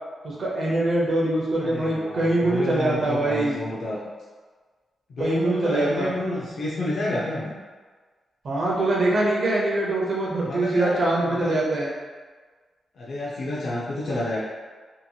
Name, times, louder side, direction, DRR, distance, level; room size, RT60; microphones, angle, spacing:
voice 1, 0.2-3.6 5.2-6.1 8.4-11.9, right 2 dB, 45° right, -4 dB, 0.6 m, -23 dB
voice 2, 1.6-4.0 5.1-7.5 10.4-11.6 12.9-14.4, left 1 dB, 55° left, -6 dB, 0.4 m, -30 dB
2.8 x 2.8 x 2.3 m, 1.4 s
wide cardioid pair, 175°, 0 cm